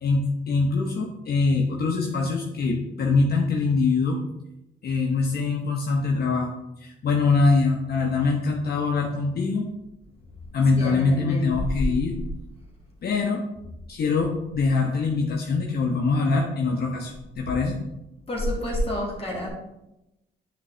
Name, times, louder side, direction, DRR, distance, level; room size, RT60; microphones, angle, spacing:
voice 1, 0.0-4.2 4.8-6.5 6.8-9.7 10.5-12.2 13.0-13.4 13.9-17.8, left 4 dB, 55° left, -1 dB, 0.9 m, -23 dB
voice 2, 10.8-11.5 18.3-19.5, left 1 dB, 30° left, -4 dB, 2.0 m, -28 dB
9.4 x 3.8 x 3.3 m, 0.91 s
cardioid pair, 90°, 20 cm